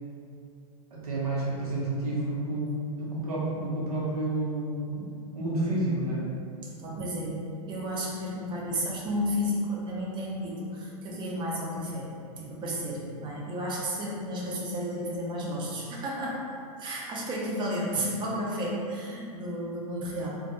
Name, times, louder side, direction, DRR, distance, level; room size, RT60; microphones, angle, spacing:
voice 1, 0.9-5.1 5.3-6.2, right 2 dB, 75° right, -6 dB, 0.8 m, -30 dB
voice 2, 6.8-7.4 7.7-16.4 16.8-20.4, equal, 25° right, -4 dB, 0.6 m, -32 dB
2.2 x 2.2 x 2.8 m, 2.4 s
hypercardioid pair, 105°, 19 cm